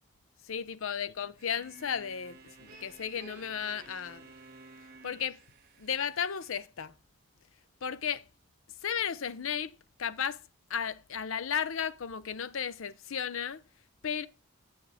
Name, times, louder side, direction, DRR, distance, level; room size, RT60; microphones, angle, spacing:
voice 1, 0.4-4.3 5.0-5.4 5.8-6.9 7.8-8.2 8.8-9.7 10.0-10.4 10.7-13.6 14.0-14.3, left 7 dB, 70° left, 0.6 m, -34 dB
sound 1, 1.4-6.7, right 3 dB, 45° right, 1.8 m, -53 dB
9.6 x 6.4 x 3.4 m
head